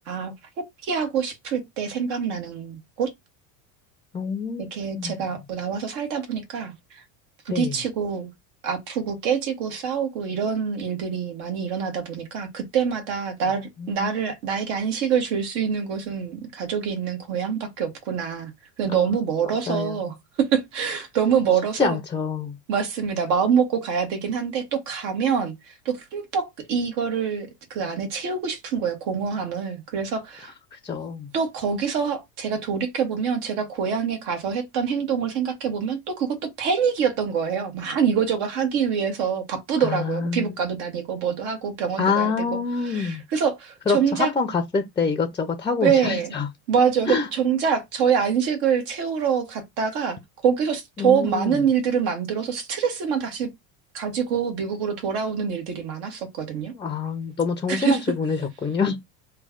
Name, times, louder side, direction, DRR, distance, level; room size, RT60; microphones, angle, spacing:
voice 1, 0.8-3.1 4.6-7.0 7.4-8.3 8.6-18.5 18.8-22.0 22.7-30.5 31.3-42.5 42.8-44.3 45.8-46.3 46.7-50.2 50.4-53.5 53.9-56.7 57.7-58.0, right 7 dB, 70° right, 1.4 m, -25 dB
voice 2, 4.1-5.2 7.5-7.8 13.8-14.1 18.9-19.1 19.5-20.0 21.8-22.6 30.7-31.3 39.8-40.6 42.0-43.2 43.9-46.5 47.1-47.3 51.0-51.6 56.7-59.0, left 5 dB, 10° left, 0.5 m, -26 dB
3.2 x 2.3 x 3.6 m
supercardioid pair, 115°, 41 cm